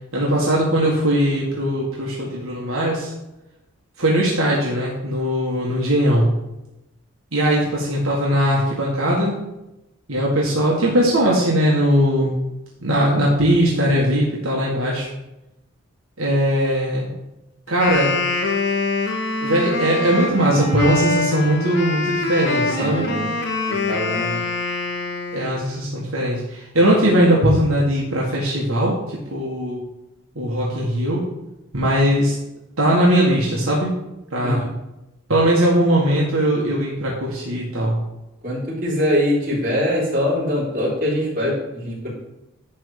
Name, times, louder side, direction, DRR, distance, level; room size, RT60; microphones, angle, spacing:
voice 1, 0.1-3.1 4.0-6.3 7.3-9.4 10.1-12.3 12.8-15.1 16.2-17.1 17.7-18.1 19.4-23.0 25.3-29.0 29.3-29.8 30.3-31.3 31.7-32.3 32.8-33.9 34.3-34.6 35.3-38.0, right 1 dB, 75° right, -4 dB, 1.7 m, -19 dB
Wind instrument woodwind instrument, 17.7-25.7, left 3 dB, 50° left, 1.0 m, -24 dB
voice 2, 22.8-23.3 23.7-24.4 34.4-34.7 38.4-42.1, equal, 40° right, -6 dB, 3.5 m, -23 dB
10.5 x 3.5 x 7.0 m, 0.94 s
head